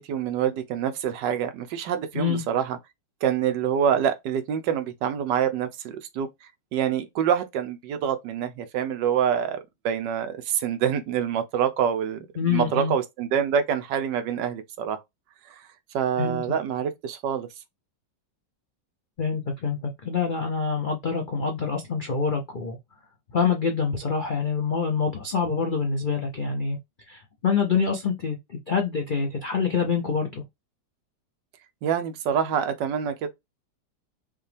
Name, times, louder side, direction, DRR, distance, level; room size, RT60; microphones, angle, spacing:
voice 1, 0.0-2.8 3.2-6.3 6.7-9.6 9.8-15.0 15.5-15.6 15.9-17.5 31.8-33.3, right 8 dB, 75° right, 1.3 m, -26 dB
voice 2, 12.4-12.9 16.2-16.4 19.2-22.8 23.3-26.8 27.1-30.4, left 5 dB, 65° left, 0.5 m, -26 dB
5.4 x 2.3 x 3.3 m
omnidirectional pair, 1.9 m